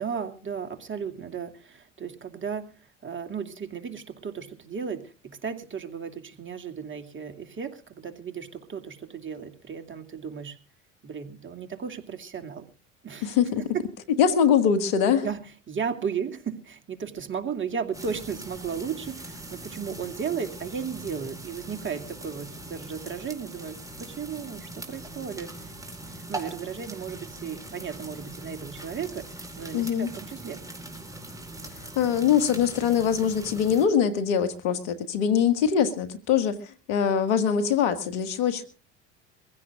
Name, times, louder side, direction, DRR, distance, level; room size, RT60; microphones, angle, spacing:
voice 1, 0.0-2.7 3.0-10.6 11.0-12.7 13.0-13.8 15.2-25.7 26.1-30.6, right 6 dB, 35° right, 2.5 m, -35 dB
voice 2, 13.2-13.6 14.2-15.3 29.7-30.1 32.0-38.6, left 8 dB, 75° left, 2.0 m, -23 dB
sound 1, 17.9-33.9, right 2 dB, 10° right, 4.2 m, -41 dB
24.0 x 16.0 x 2.5 m
hypercardioid pair, 70°, 36 cm